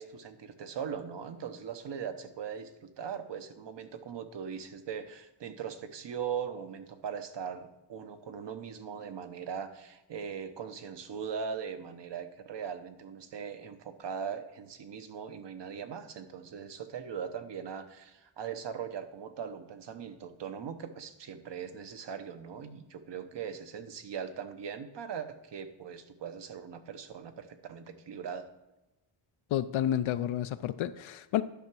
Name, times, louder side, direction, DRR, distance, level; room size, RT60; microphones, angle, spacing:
voice 1, 0.0-28.5, right 7 dB, 60° right, 9 dB, 1.0 m, -40 dB
voice 2, 29.5-31.4, left 11 dB, 70° left, 12 dB, 0.5 m, -30 dB
11.0 x 5.6 x 6.1 m, 0.96 s
wide cardioid pair, 145°, 49 cm